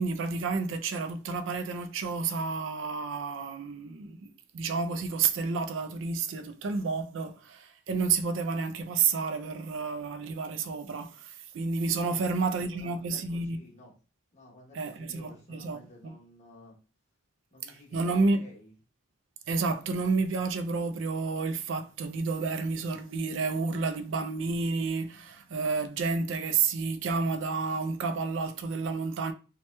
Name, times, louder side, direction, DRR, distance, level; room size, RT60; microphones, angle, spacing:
voice 1, 0.0-13.6 14.7-16.2 17.9-18.4 19.5-29.3, right 4 dB, 75° right, 0.4 m, -30 dB
voice 2, 12.1-13.9 14.3-16.8 17.5-18.7, left 1 dB, 35° left, 1.0 m, -53 dB
2.9 x 2.2 x 3.1 m
head